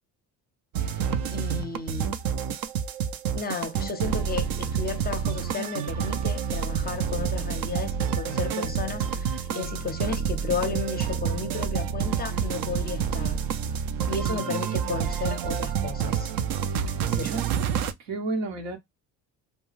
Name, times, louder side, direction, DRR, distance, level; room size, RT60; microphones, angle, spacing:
sound 1, 0.7-17.9, right 7 dB, 60° right, 0.5 m, -28 dB
voice 1, 0.8-2.1 3.3-13.4 14.1-16.3 17.1-17.3, left 5 dB, 25° left, 0.6 m, -33 dB
voice 2, 16.9-17.4 18.0-18.8, right 3 dB, 80° right, 1.0 m, -32 dB
2.3 x 2.2 x 3.0 m
supercardioid pair, 80°, 40 cm